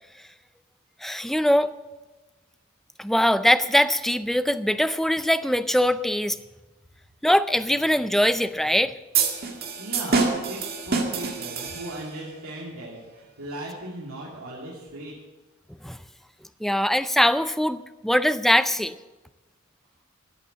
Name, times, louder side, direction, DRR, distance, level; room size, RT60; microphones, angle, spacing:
voice 1, 1.0-1.7 3.0-6.4 7.2-8.9 15.8-16.0 16.6-18.9, equal, ahead, 12 dB, 0.4 m, -22 dB
sound 1, 9.1-12.2, right 4 dB, 45° right, 1.9 m, -26 dB
voice 2, 9.8-15.1, right 1 dB, 75° right, -6 dB, 2.8 m, -37 dB
14.0 x 8.6 x 7.4 m, 1.2 s
head